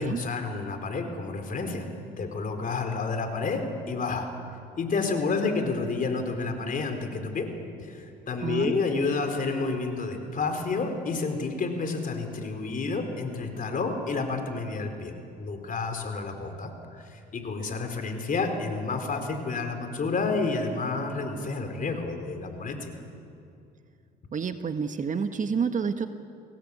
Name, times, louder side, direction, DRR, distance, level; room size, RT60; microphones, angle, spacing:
voice 1, 0.0-1.9 2.2-4.3 4.8-7.5 7.8-22.9, left 4 dB, 45° left, 6 dB, 4.1 m, -30 dB
voice 2, 8.4-8.7 24.3-26.1, right 6 dB, 40° right, 8 dB, 1.5 m, -29 dB
29.5 x 18.0 x 8.5 m, 2.5 s
supercardioid pair, 80°, 20 cm